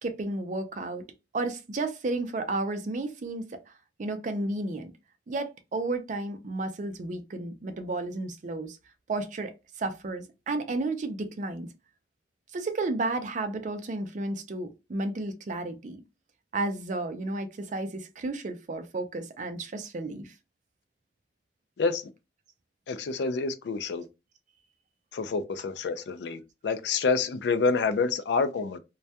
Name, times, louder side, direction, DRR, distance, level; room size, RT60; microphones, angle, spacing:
voice 1, 0.0-1.1 1.3-3.5 4.0-4.9 5.3-8.8 9.1-9.5 9.8-11.7 12.5-16.0 16.5-20.3, right 2 dB, 45° right, 0.4 m, -32 dB
voice 2, 22.9-24.1 25.1-28.8, left 4 dB, 70° left, 0.4 m, -28 dB
2.2 x 2.1 x 2.7 m
head